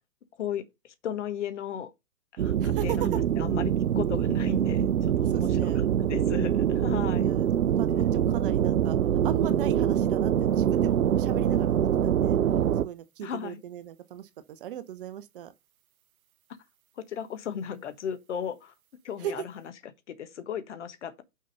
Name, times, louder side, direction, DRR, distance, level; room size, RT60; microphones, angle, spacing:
voice 1, 0.4-1.9 2.3-7.3 8.0-8.1 13.2-13.6 17.0-18.7 19.0-19.7 20.1-21.2, left 8 dB, 50° left, 1.5 m, -36 dB
sound 1, 2.4-12.9, right 9 dB, 70° right, 0.6 m, -24 dB
voice 2, 2.6-3.1 5.2-5.8 7.2-7.5 7.8-9.0 9.2-12.4 12.8-15.5 19.2-19.3, right 11 dB, 35° right, 0.9 m, -37 dB
6.3 x 5.5 x 5.3 m
figure-of-eight pair, 120°, 44 cm